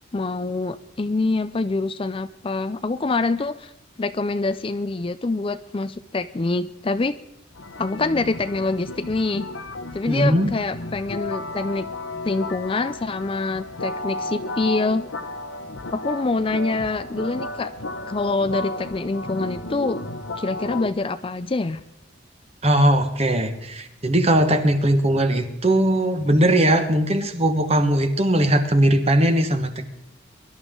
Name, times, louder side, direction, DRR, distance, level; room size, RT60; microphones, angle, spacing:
voice 1, 0.1-3.7 4.0-7.2 7.8-9.5 9.9-11.9 12.2-15.0 15.9-17.7 18.1-20.0 20.4-21.8, left 3 dB, 25° left, 12 dB, 0.4 m, -25 dB
sound 1, 7.6-20.9, left 2 dB, 80° left, 1.1 m, -33 dB
voice 2, 10.1-10.5 22.6-29.9, right 1 dB, 30° right, 7 dB, 1.5 m, -19 dB
23.0 x 12.0 x 3.8 m, 0.90 s
head